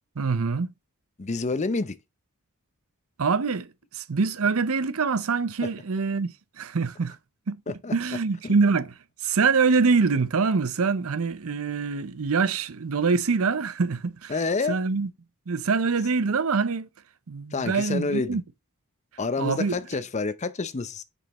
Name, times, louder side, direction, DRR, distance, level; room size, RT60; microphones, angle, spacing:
voice 1, 0.2-0.7 3.2-3.7 3.9-7.2 7.5-8.9 9.2-14.3 14.7-15.1 15.5-16.9 17.3-18.4 19.4-19.8, right 4 dB, 65° right, 0.6 m, -24 dB
voice 2, 1.2-1.9 5.6-5.7 7.7-7.9 8.4-8.5 14.3-14.8 17.5-18.4 19.2-21.0, left 3 dB, 30° left, 0.5 m, -28 dB
7.1 x 5.5 x 3.0 m
head